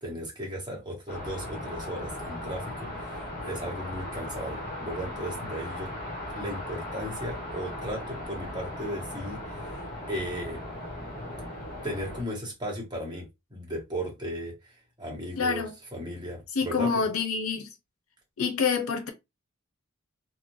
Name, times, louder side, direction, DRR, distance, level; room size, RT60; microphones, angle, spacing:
voice 1, 0.0-5.9 6.3-10.6 11.8-14.7 15.0-16.9, equal, 20° right, 1.0 m, -36 dB
sound 1, 1.1-12.2, left 1 dB, 40° left, 1.4 m, -37 dB
voice 2, 15.4-15.7 16.5-17.7 18.4-19.1, left 5 dB, 85° left, 0.6 m, -27 dB
3.0 x 2.2 x 2.6 m
head